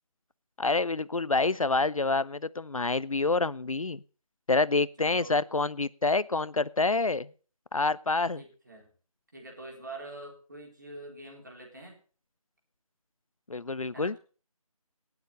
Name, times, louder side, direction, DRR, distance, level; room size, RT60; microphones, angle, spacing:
voice 1, 0.6-4.0 4.5-7.3 7.7-8.4 13.5-14.1, left 3 dB, 65° left, 19 dB, 0.6 m, -27 dB
voice 2, 5.0-5.4 8.4-8.9 9.3-12.0 13.9-14.2, right 2 dB, 30° right, 0 dB, 4.0 m, -45 dB
19.0 x 6.9 x 6.7 m, 0.39 s
figure-of-eight pair, 180°, 19 cm